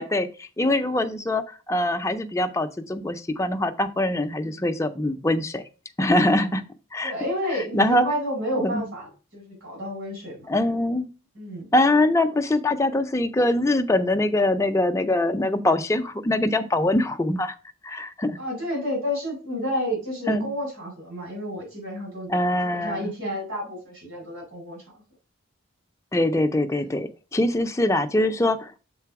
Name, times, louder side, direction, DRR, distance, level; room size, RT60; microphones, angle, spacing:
voice 1, 0.0-5.6 6.0-6.6 6.9-7.1 7.7-8.1 8.6-8.9 10.5-11.1 11.7-17.6 17.8-18.4 20.3-20.5 22.3-23.1 26.1-28.8, left 1 dB, 15° left, 7 dB, 0.4 m, -23 dB
voice 2, 7.0-10.5 11.3-11.7 16.4-16.6 18.4-22.3 22.6-24.8 26.8-26.9, equal, 70° right, -1 dB, 4.0 m, -31 dB
6.7 x 3.8 x 4.6 m, 0.34 s
head